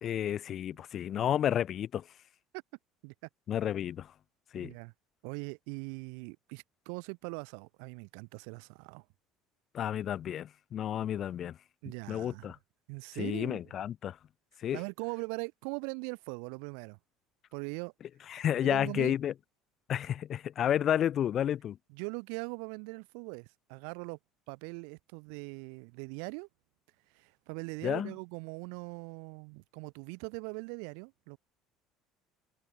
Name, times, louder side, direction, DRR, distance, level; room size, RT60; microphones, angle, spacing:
voice 1, 0.0-2.0 3.5-4.1 4.5-4.7 9.7-11.6 12.1-12.6 13.1-14.2 14.6-14.8 18.3-19.3 19.9-21.8 27.8-28.1, left 10 dB, 45° left, 2.1 m, -31 dB
voice 2, 4.6-4.9 5.2-9.1 11.8-12.5 12.9-13.6 14.7-17.0 17.5-17.9 18.6-19.2 21.9-24.2 24.5-26.5 27.1-31.4, right 40 dB or more, 85° right, 1.7 m, -41 dB
cardioid pair, 120°, 0 cm